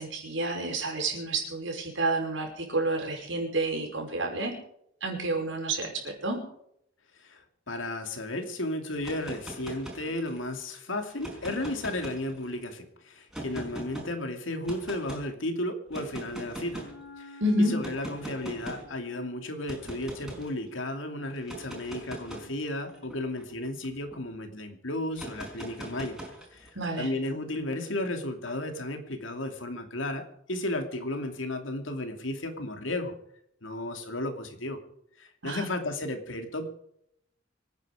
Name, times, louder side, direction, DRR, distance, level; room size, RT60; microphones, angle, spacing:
voice 1, 0.0-4.5 5.0-6.4 17.4-17.8 26.8-27.1 35.4-35.7, right 2 dB, 75° right, 1 dB, 5.4 m, -29 dB
voice 2, 7.7-16.8 17.2-26.2 26.5-26.7 27.0-30.2 30.5-33.2 33.6-34.8 35.2-36.7, left 1 dB, 85° left, 6 dB, 2.7 m, -34 dB
sound 1, 8.9-10.5 11.1-12.6 13.3-14.1 14.7-15.2 15.9-17.0 17.8-18.9 19.7-20.5 21.4-24.2 25.1-26.7, right 1 dB, ahead, 5.3 m, -41 dB
Wind instrument woodwind instrument, 16.6-23.3, left 3 dB, 60° left, 6.2 m, -53 dB
26.0 x 9.5 x 5.0 m, 0.72 s
head